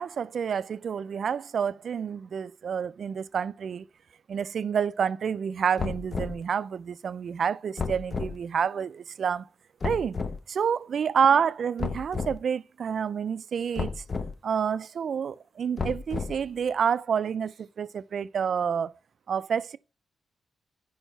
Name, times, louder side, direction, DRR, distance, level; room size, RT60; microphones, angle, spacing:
voice 1, 0.0-3.9 4.3-9.5 9.8-10.2 10.5-13.9 14.4-18.9 19.3-19.8, right 7 dB, 65° right, 0.3 m, -28 dB
sound 1, 5.8-6.4 7.8-8.4 9.8-10.4 11.8-12.4 13.8-14.3 15.8-16.5, left 4 dB, 40° left, 0.6 m, -32 dB
5.0 x 4.5 x 4.4 m
cardioid pair, 80°, 0 cm